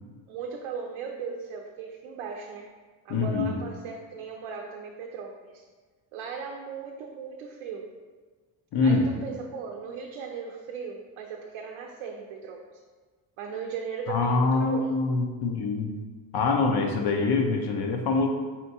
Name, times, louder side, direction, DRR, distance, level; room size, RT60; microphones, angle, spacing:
voice 1, 0.3-2.7 3.0-5.6 6.1-7.9 8.8-12.8 13.4-14.9, right 6 dB, 80° right, 0 dB, 0.6 m, -37 dB
voice 2, 3.1-3.6 8.7-9.1 14.1-15.9 16.3-18.3, left 3 dB, 55° left, 3 dB, 0.7 m, -24 dB
4.3 x 3.3 x 2.7 m, 1.4 s
supercardioid pair, 80°, 47 cm